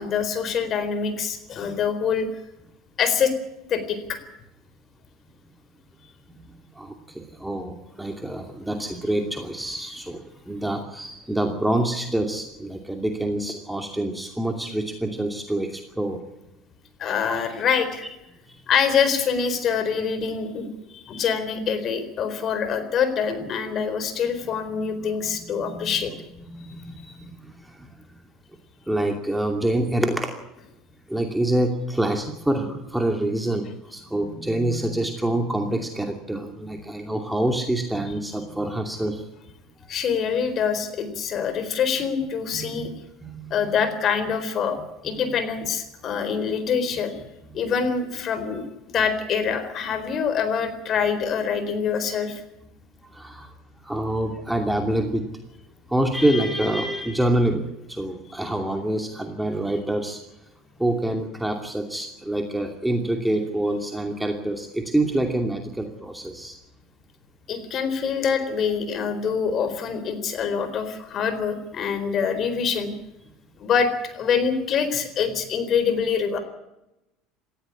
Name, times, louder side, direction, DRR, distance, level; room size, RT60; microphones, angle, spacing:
voice 1, 0.0-2.3 3.0-3.3 3.7-4.2 17.0-18.1 18.7-20.7 20.9-26.1 26.6-27.1 39.9-42.9 43.5-44.8 45.0-47.2 47.5-52.4 67.5-72.9 73.6-76.4, left 6 dB, 45° left, 10 dB, 4.2 m, -25 dB
voice 2, 6.3-16.2 17.3-17.5 18.5-18.6 25.5-26.1 26.4-28.1 28.9-30.4 31.1-39.3 42.5-42.9 43.2-43.5 47.5-47.6 53.1-55.3 55.9-60.2 60.8-66.6, right 1 dB, 5° right, 4 dB, 2.6 m, -26 dB
18.5 x 15.0 x 9.9 m, 0.92 s
hypercardioid pair, 85°, 0 cm